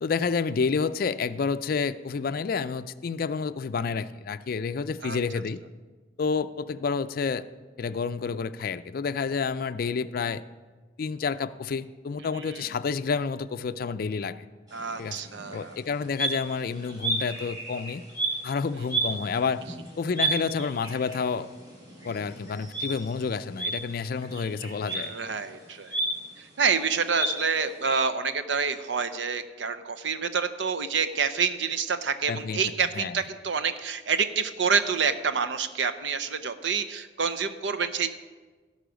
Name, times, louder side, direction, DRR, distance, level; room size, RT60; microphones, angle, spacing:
voice 1, 0.0-5.6 6.2-7.5 7.8-10.4 11.0-14.4 15.0-15.2 15.5-18.0 18.4-19.6 20.0-21.5 22.0-25.1 32.3-32.6 33.0-33.2, left 5 dB, 55° left, 12 dB, 0.4 m, -29 dB
voice 2, 12.2-12.6 14.7-15.8 24.9-26.0 26.4-38.1, right 5 dB, 85° right, 10 dB, 0.7 m, -28 dB
sound 1, 14.7-28.0, right 2 dB, 25° right, 3.5 m, -34 dB
17.0 x 5.6 x 5.1 m, 1.3 s
head